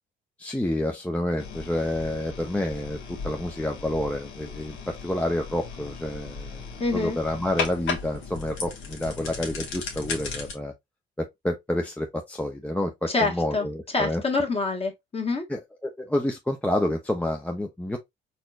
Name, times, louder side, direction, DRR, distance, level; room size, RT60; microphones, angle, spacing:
voice 1, 0.4-6.7 6.9-10.7 11.2-14.2 15.5-18.0, left 1 dB, 5° left, 0.6 m, -29 dB
sound 1, 1.4-10.5, left 5 dB, 85° left, 1.4 m, -36 dB
voice 2, 6.8-7.2 13.1-13.7 13.9-15.5, left 3 dB, 30° left, 1.4 m, -26 dB
4.2 x 3.1 x 2.4 m
cardioid pair, 90°, 20 cm